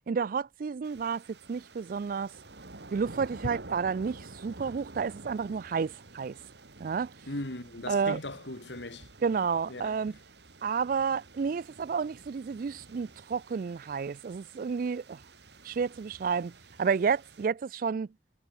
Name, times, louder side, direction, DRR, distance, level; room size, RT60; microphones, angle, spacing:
voice 1, 0.1-1.2 1.5-2.3 2.9-6.3 6.8-7.1 7.9-8.2 9.2-10.2 10.6-15.2 15.6-16.5 16.8-18.1, right 5 dB, 50° right, 0.3 m, -30 dB
sound 1, 0.8-17.5, right 2 dB, 75° right, 2.2 m, -50 dB
voice 2, 7.3-9.1 9.7-10.0, left 2 dB, 90° left, 3.1 m, -38 dB
head